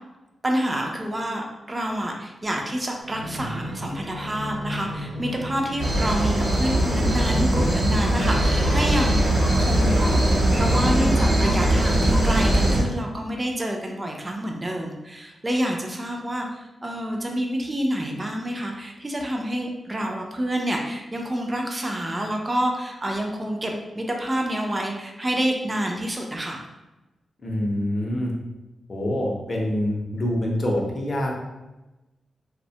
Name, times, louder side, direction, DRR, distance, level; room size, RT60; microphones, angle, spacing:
voice 1, 0.4-10.2 10.5-26.6, equal, 20° right, 1 dB, 0.3 m, -28 dB
sound 1, 3.0-11.0 11.6-12.9 13.5-13.6, left 1 dB, 85° right, 0.5 m, -35 dB
sound 2, 5.8-12.8, right 1 dB, 60° right, 0.9 m, -20 dB
voice 2, 27.4-28.3 28.9-31.3, left 1 dB, 40° left, -1 dB, 0.5 m, -25 dB
2.7 x 2.1 x 2.7 m, 1.0 s
wide cardioid pair, 125°, 0 cm